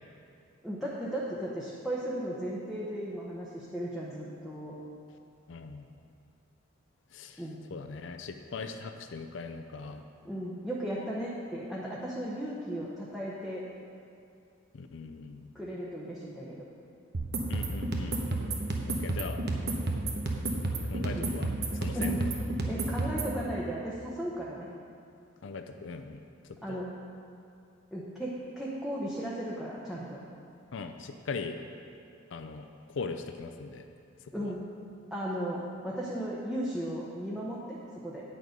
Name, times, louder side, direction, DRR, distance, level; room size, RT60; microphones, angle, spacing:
voice 1, 0.6-4.8 7.4-7.6 10.2-13.6 15.5-16.6 21.1-21.3 21.9-22.3 22.6-24.7 26.6-26.9 27.9-30.2 34.3-34.6 35.1-38.2, right 1 dB, ahead, -6 dB, 0.8 m, -35 dB
voice 2, 5.5-5.8 7.1-7.4 7.7-10.0 14.7-15.5 17.5-18.2 18.9-19.4 20.9-21.5 21.7-22.3 25.4-26.2 26.7-26.8 30.7-31.6 32.3-32.7 32.9-33.8 34.4-34.5, left 4 dB, 70° left, 7 dB, 0.5 m, -40 dB
sound 1, 17.1-23.3, right 2 dB, 55° right, 0.9 m, -31 dB
9.3 x 6.5 x 5.1 m, 2.5 s
head